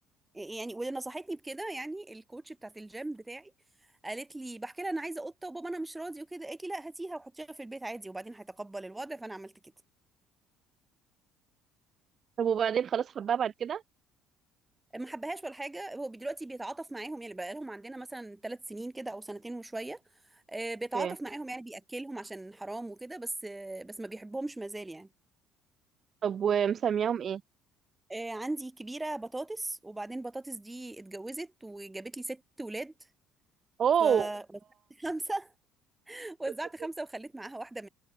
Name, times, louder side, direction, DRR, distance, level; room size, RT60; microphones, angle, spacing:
voice 1, 0.3-3.5 4.0-9.5 14.9-20.0 20.3-25.1 28.1-32.9 34.0-34.4 35.0-35.5 36.1-37.9, right 2 dB, 10° right, 2.6 m, -38 dB
voice 2, 12.4-13.8 20.9-21.1 26.2-27.4 33.8-34.3, right 8 dB, 45° right, 2.7 m, -27 dB
supercardioid pair, 95°, 0 cm